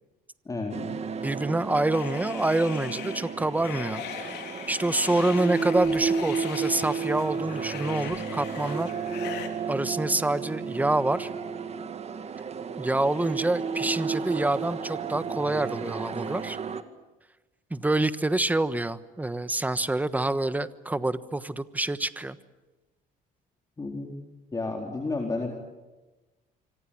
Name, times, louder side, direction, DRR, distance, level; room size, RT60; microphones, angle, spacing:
voice 1, 0.5-0.9 23.8-24.1 24.5-25.5, left 3 dB, 20° left, 1 dB, 4.0 m, -31 dB
sound 1, 0.7-16.8, right 5 dB, 40° right, 2.0 m, -33 dB
voice 2, 1.2-4.3 4.7-8.9 9.7-11.3 12.8-16.6 17.7-22.4, right 2 dB, 10° right, 13 dB, 1.2 m, -27 dB
sound 2, 1.9-9.5, left 10 dB, 80° left, 3.5 m, -40 dB
26.0 x 25.0 x 8.8 m, 1.1 s
cardioid pair, 110°, 17 cm